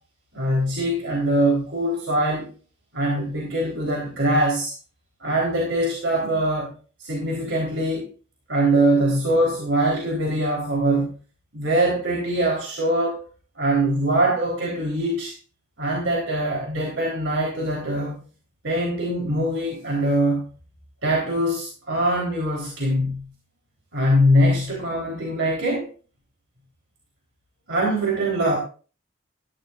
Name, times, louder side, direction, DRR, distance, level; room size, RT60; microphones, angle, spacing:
voice 1, 0.3-2.4 2.9-4.7 5.2-6.7 7.0-8.0 8.5-11.1 11.5-13.2 13.6-15.3 15.8-18.2 18.6-20.4 21.0-23.2 23.9-25.9 27.7-28.6, right 1 dB, 80° right, -2 dB, 3.8 m, -22 dB
16.0 x 13.5 x 2.5 m, 0.37 s
head